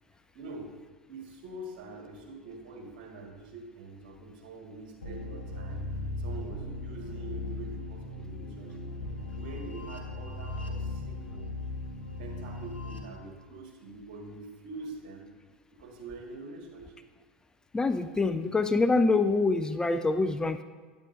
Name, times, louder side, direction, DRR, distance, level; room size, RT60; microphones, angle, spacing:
voice 1, 0.3-0.7 1.1-5.9 6.2-8.9 9.3-11.6 12.2-15.3 15.7-17.0, right 2 dB, 65° right, 1 dB, 1.6 m, -45 dB
sound 1, 5.0-13.0, left 2 dB, 90° left, 0.9 m, -37 dB
voice 2, 17.7-20.6, left 3 dB, 15° left, 10 dB, 0.3 m, -25 dB
9.5 x 8.1 x 2.6 m, 1.5 s
hypercardioid pair, 80°, 5 cm